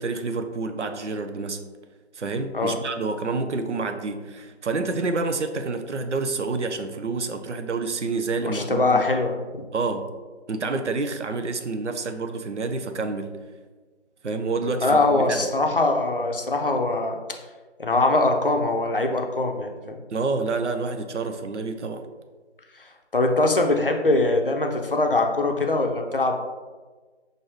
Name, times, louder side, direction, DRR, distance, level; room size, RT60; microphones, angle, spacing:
voice 1, 0.0-1.6 2.1-9.1 9.7-10.1 10.5-13.4 14.2-15.5 20.1-22.1, right 3 dB, 85° right, 7 dB, 0.6 m, -28 dB
voice 2, 8.4-9.7 14.8-17.2 17.8-20.0 23.1-26.3, left 2 dB, 55° left, 3 dB, 0.5 m, -22 dB
5.6 x 2.6 x 3.1 m, 1.3 s
figure-of-eight pair, 175°, 34 cm